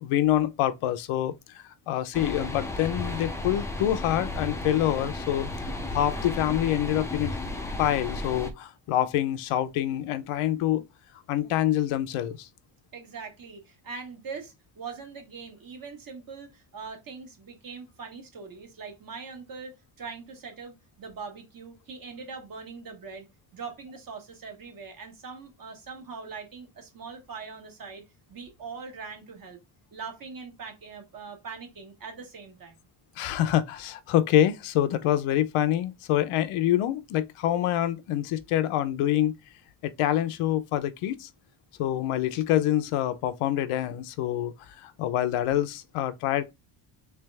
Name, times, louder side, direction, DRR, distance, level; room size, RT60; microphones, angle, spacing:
voice 1, 0.0-5.5 5.9-7.4 7.8-10.8 11.3-12.5 33.2-39.3 39.8-41.3 41.8-44.5 44.8-46.5, left 12 dB, 90° left, 0.7 m, -26 dB
sound 1, 2.1-8.5, left 2 dB, 5° left, 0.3 m, -34 dB
voice 2, 12.9-23.3 23.5-28.0 28.3-29.6 29.9-32.8, right 5 dB, 40° right, 1.3 m, -42 dB
3.4 x 3.3 x 3.3 m
cardioid pair, 145°, 50 cm